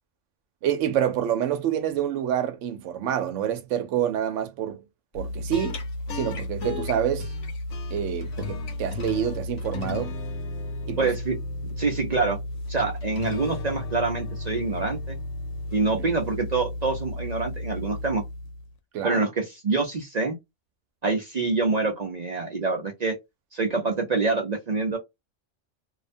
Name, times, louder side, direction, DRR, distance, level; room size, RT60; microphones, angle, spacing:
voice 1, 0.6-4.8 5.1-5.8 6.1-7.3 7.9-10.2 10.9-11.1 16.0-16.1 18.9-19.3, right 10 dB, 80° right, 0.9 m, -27 dB
sound 1, 5.1-18.7, left 2 dB, 75° left, 1.0 m, -33 dB
voice 2, 11.0-11.3 11.8-12.4 12.7-15.2 15.7-18.2 19.0-20.4 21.0-23.1 23.5-25.0, right 3 dB, 50° right, 0.5 m, -26 dB
2.4 x 2.1 x 2.5 m
omnidirectional pair, 1.3 m